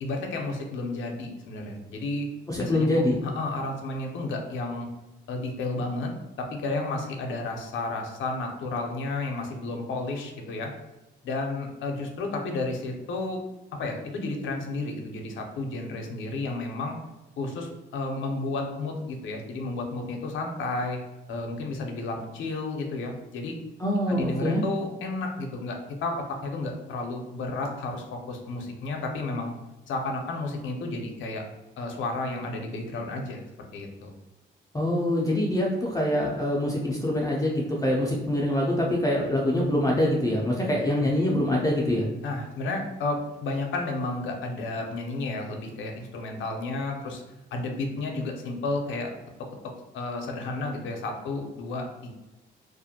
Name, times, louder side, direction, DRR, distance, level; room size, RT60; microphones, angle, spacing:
voice 1, 0.0-2.3 2.6-2.9 3.2-4.9 5.3-6.1 6.4-10.7 11.2-13.4 13.8-17.0 17.4-21.0 21.3-23.6 24.1-29.5 29.9-31.4 31.8-33.4 33.7-34.1 40.9-41.1 42.2-47.2 47.5-49.1 49.9-52.1, left 2 dB, 75° left, 2 dB, 0.5 m, -32 dB
voice 2, 2.5-3.2 23.8-24.6 34.7-42.0, left 1 dB, 15° left, -3 dB, 0.4 m, -25 dB
2.4 x 2.1 x 2.7 m, 1.0 s
cardioid pair, 90°, 20 cm